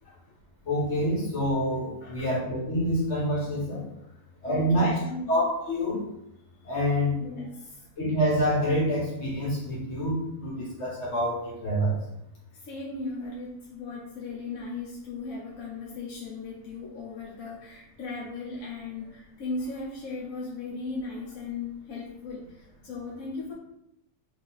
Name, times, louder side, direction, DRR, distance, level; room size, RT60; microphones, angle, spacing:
voice 1, 0.6-3.8 4.4-4.9 5.3-6.1 6.6-7.2 8.0-12.0, equal, 50° left, -4 dB, 1.3 m, -27 dB
voice 2, 4.0-5.4 7.2-7.9 12.5-23.5, left 3 dB, 65° left, -6 dB, 1.2 m, -37 dB
4.1 x 2.8 x 4.0 m, 0.82 s
omnidirectional pair, 1.7 m